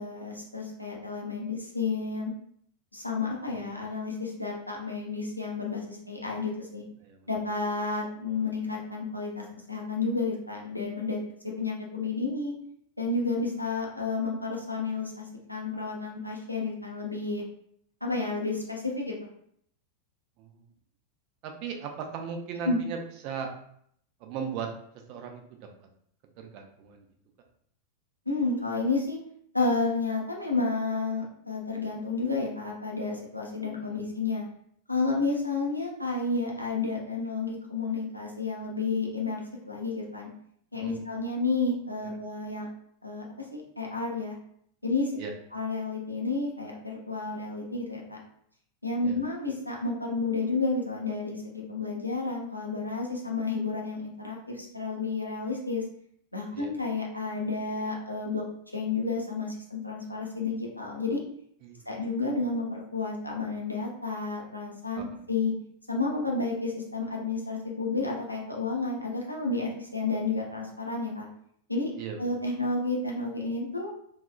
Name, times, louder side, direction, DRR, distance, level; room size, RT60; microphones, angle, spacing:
voice 1, 0.0-2.3 2.9-6.8 7.3-11.2 11.4-12.5 13.0-17.4 18.0-19.3 22.6-22.8 28.3-29.2 29.5-34.4 34.9-39.4 39.7-40.3 40.7-42.7 43.0-43.2 43.5-44.4 44.8-45.1 45.5-48.2 48.8-55.8 56.3-58.4 58.7-61.2 61.9-65.5 65.9-71.3 71.7-71.9 72.2-73.9, left 3 dB, 90° left, -2 dB, 0.6 m, -31 dB
voice 2, 21.4-23.5 24.2-24.7 25.1-25.9 26.4-27.1 33.9-34.0 40.7-41.0 42.0-42.2 45.2-45.3 49.0-49.2 56.5-56.8 61.6-61.9 64.9-65.3 72.0-72.2, right 6 dB, 45° right, 4 dB, 0.4 m, -38 dB
2.7 x 2.3 x 2.3 m, 0.67 s
figure-of-eight pair, 90°, 0 cm